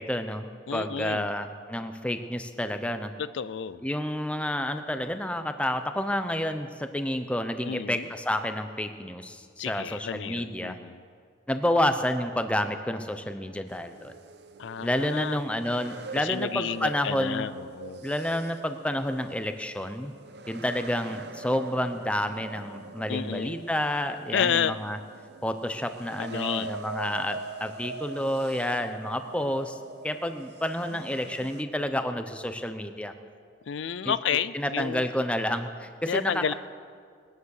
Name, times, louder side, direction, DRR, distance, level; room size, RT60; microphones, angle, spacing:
voice 1, 0.0-3.1 3.8-10.8 11.5-14.1 14.8-17.5 18.0-20.1 20.5-25.0 25.4-33.1 34.0-34.1 34.5-36.5, left 1 dB, 5° left, 8 dB, 0.7 m, -29 dB
voice 2, 0.7-1.3 3.2-3.9 7.6-8.1 9.6-11.0 14.6-15.4 16.1-18.0 23.1-23.6 24.3-24.8 26.2-26.7 33.7-35.1 36.1-36.5, left 7 dB, 80° left, 15 dB, 0.4 m, -31 dB
sound 1, 13.7-31.6, right 3 dB, 60° right, 0.7 m, -43 dB
20.5 x 9.6 x 6.5 m, 2.1 s
head